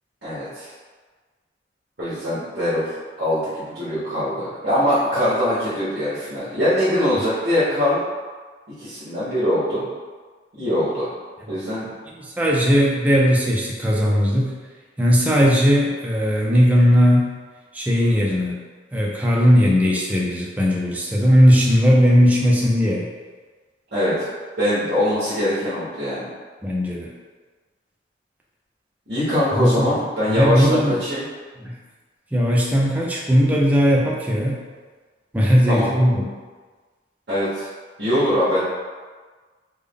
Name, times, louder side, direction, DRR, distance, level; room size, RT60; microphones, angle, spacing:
voice 1, 0.2-0.7 2.0-2.9 3.2-8.0 8.8-9.8 10.5-11.1 11.5-11.9 23.9-24.3 24.6-26.3 29.1-31.2 35.7-35.9 37.3-37.7 38.0-38.6, left 1 dB, 60° right, -13 dB, 1.1 m, -22 dB
voice 2, 12.1-14.5 15.0-17.3 17.7-18.6 18.9-23.1 26.6-27.1 29.5-30.0 30.3-31.0 31.6-31.8 32.3-34.6 35.3-36.2, equal, 10° right, -4 dB, 0.4 m, -18 dB
3.6 x 2.1 x 3.4 m, 1.4 s
head